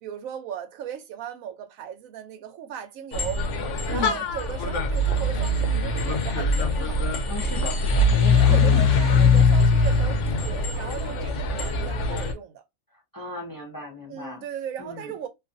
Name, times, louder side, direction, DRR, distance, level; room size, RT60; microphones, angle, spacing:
voice 1, 0.0-3.4 3.9-7.0 8.3-12.6 14.1-15.3, right 9 dB, 85° right, 1.0 m, -37 dB
sound 1, 3.1-12.3, left 3 dB, 70° left, 0.9 m, -22 dB
voice 2, 3.9-4.2 7.3-8.9 13.1-14.4 14.8-15.1, left 3 dB, 20° left, 0.6 m, -35 dB
sound 2, 4.3-12.0, right 7 dB, 65° right, 0.5 m, -37 dB
2.5 x 2.4 x 2.5 m
omnidirectional pair, 1.4 m